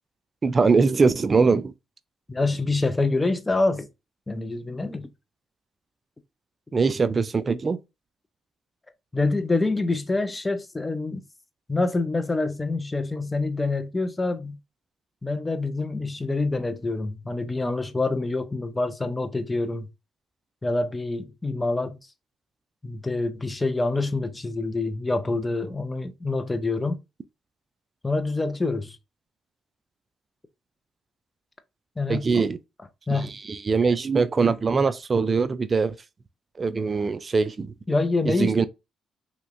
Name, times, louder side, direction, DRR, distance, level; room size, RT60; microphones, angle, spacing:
voice 1, 0.4-1.7 6.7-7.8 32.1-32.6 33.1-33.2 33.5-35.9 36.6-37.7 38.3-38.6, right 4 dB, 35° right, 0.3 m, -22 dB
voice 2, 2.3-3.9 4.3-5.1 9.1-11.2 11.7-14.6 15.2-19.9 20.6-22.0 22.8-27.0 28.0-29.0 32.0-32.5 33.1-33.3 37.9-38.7, left 3 dB, 15° left, 0.5 m, -26 dB
3.0 x 2.9 x 2.5 m
cardioid pair, 90°, 0 cm